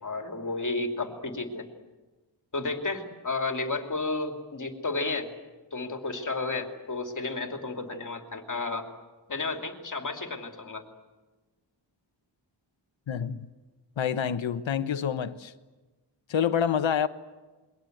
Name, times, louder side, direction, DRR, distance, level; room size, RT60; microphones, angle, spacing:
voice 1, 0.0-1.7 2.5-5.3 5.7-8.9 9.3-10.9, left 3 dB, 40° left, 2.7 m, -32 dB
voice 2, 13.1-13.5 14.0-15.5 16.3-17.1, left 8 dB, 90° left, 1.2 m, -27 dB
28.0 x 22.5 x 7.9 m
wide cardioid pair, 140°, 45 cm